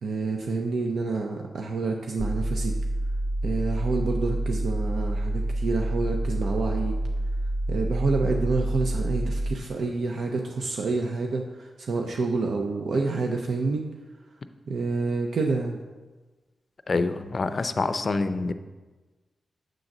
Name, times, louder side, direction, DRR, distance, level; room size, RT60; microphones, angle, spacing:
voice 1, 0.0-2.7 3.4-7.0 7.7-13.8 14.7-15.8, right 3 dB, 80° right, 2 dB, 0.6 m, -28 dB
sound 1, 2.2-9.6, right 1 dB, 35° right, 0.5 m, -28 dB
voice 2, 16.9-18.5, left 3 dB, 45° left, 10 dB, 0.4 m, -26 dB
7.7 x 3.9 x 6.0 m, 1.2 s
cardioid pair, 85°, 0 cm